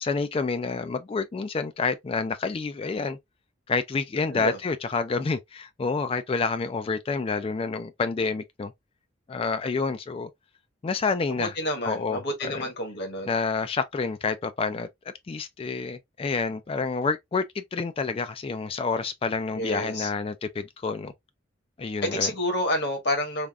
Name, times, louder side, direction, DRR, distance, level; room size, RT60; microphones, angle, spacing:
voice 1, 0.0-3.2 3.7-8.7 9.3-10.3 10.8-11.5 11.8-12.6 13.3-14.9 15.3-21.1 21.8-22.3, left 4 dB, 30° left, 0.3 m, -28 dB
voice 2, 11.3-13.4 19.5-20.1 22.0-23.5, left 1 dB, 60° left, 1.2 m, -29 dB
3.4 x 2.4 x 2.3 m
head